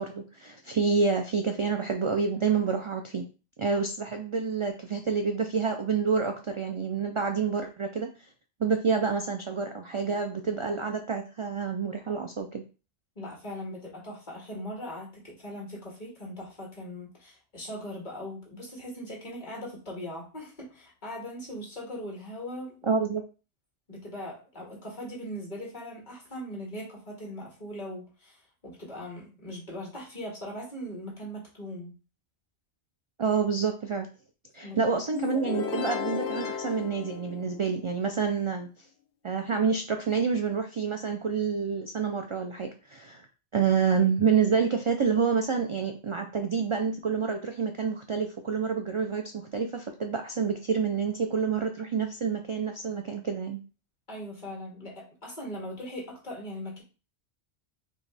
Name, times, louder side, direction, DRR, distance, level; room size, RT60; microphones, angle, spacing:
voice 1, 0.0-3.3 3.6-8.1 8.6-12.6 22.8-23.2 33.2-34.1 34.5-38.7 39.2-43.3 43.5-53.6, right 5 dB, 55° right, 4 dB, 0.3 m, -28 dB
voice 2, 13.2-23.0 23.9-31.9 34.6-34.8 54.1-56.8, equal, 45° left, -3 dB, 1.9 m, -40 dB
sound 1, 35.1-38.0, left 7 dB, 80° left, 1.0 m, -34 dB
4.5 x 3.4 x 3.3 m, 0.34 s
omnidirectional pair, 1.1 m